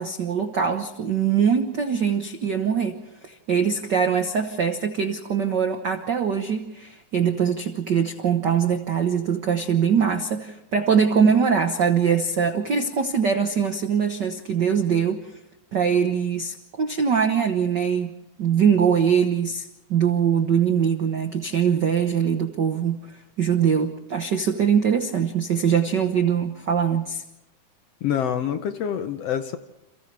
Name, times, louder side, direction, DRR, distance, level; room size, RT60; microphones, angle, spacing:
voice 1, 0.0-15.2 15.7-23.0 23.4-27.2, right 7 dB, 75° right, 7 dB, 0.9 m, -22 dB
voice 2, 28.0-29.6, left 9 dB, 70° left, 9 dB, 1.6 m, -26 dB
30.0 x 28.5 x 3.3 m, 0.97 s
omnidirectional pair, 3.7 m